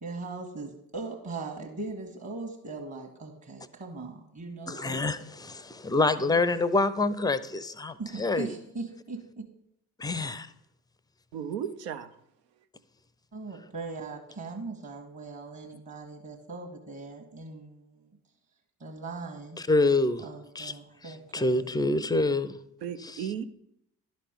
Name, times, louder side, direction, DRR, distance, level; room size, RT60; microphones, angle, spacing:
voice 1, 0.0-5.0 6.3-6.4 8.0-9.4 13.3-18.1 18.8-19.6 20.2-21.7, right 3 dB, 35° right, 1.5 m, -40 dB
voice 2, 4.7-8.6 10.0-10.5 19.6-20.2 20.6-20.7 21.0-22.6 23.0-23.2, left 2 dB, 10° left, 0.4 m, -27 dB
voice 3, 11.3-12.1 22.8-23.5, right 8 dB, 85° right, 0.6 m, -34 dB
11.0 x 4.2 x 5.2 m
hypercardioid pair, 45°, 48 cm